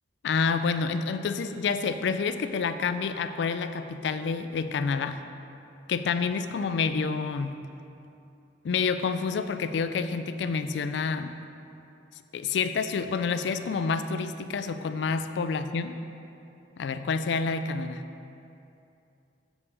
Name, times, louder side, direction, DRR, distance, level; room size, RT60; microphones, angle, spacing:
voice 1, 0.2-5.2 5.9-7.5 8.6-11.3 12.3-16.0 16.8-18.0, left 5 dB, 70° left, 10 dB, 0.3 m, -28 dB
7.1 x 7.0 x 3.3 m, 2.7 s
head